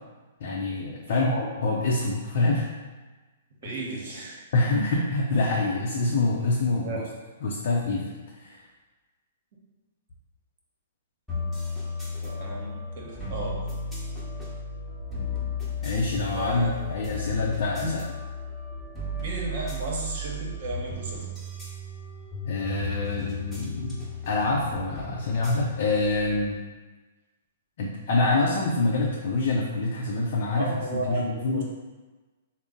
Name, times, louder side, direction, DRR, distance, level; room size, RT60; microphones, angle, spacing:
voice 1, 0.4-2.7 3.6-3.7 4.5-7.0 7.4-8.6 15.8-18.0 22.5-26.6 27.8-31.6, left 2 dB, 60° left, -3 dB, 0.5 m, -26 dB
voice 2, 3.6-4.4 6.8-7.0 12.2-13.6 16.3-16.7 17.8-17.9 19.2-21.3 30.5-31.6, right 2 dB, 55° right, -2 dB, 1.0 m, -34 dB
sound 1, 11.3-26.5, left 2 dB, ahead, 1.0 m, -34 dB
3.7 x 2.0 x 3.7 m, 1.3 s
hypercardioid pair, 125°, 0 cm